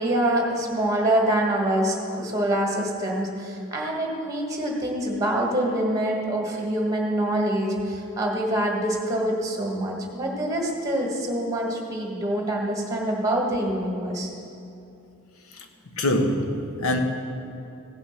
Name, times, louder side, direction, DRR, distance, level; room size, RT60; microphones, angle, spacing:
voice 1, 0.0-14.3, right 1 dB, 15° right, 1.5 m, -25 dB
voice 2, 16.0-17.0, left 1 dB, 70° left, 1.1 m, -24 dB
16.0 x 5.8 x 5.8 m
head